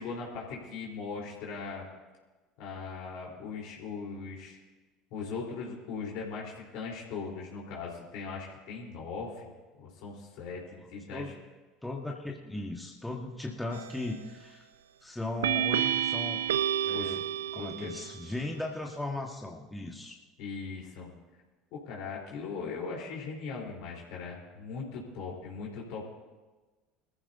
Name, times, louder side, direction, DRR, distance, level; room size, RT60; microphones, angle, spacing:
voice 1, 0.0-1.8 2.6-4.6 5.1-9.5 9.8-11.3 16.9-17.2 17.6-17.9 20.4-21.1 21.7-26.1, left 5 dB, 60° left, -2 dB, 3.8 m, -39 dB
voice 2, 10.8-11.4 11.8-14.7 15.0-16.4 16.8-17.2 17.5-20.2, left 2 dB, 5° left, 0 dB, 1.6 m, -37 dB
sound 1, 13.7-14.2 15.4-18.2, right 10 dB, 80° right, 0.6 m, -30 dB
23.5 x 14.5 x 2.7 m, 1.3 s
figure-of-eight pair, 70°, 0 cm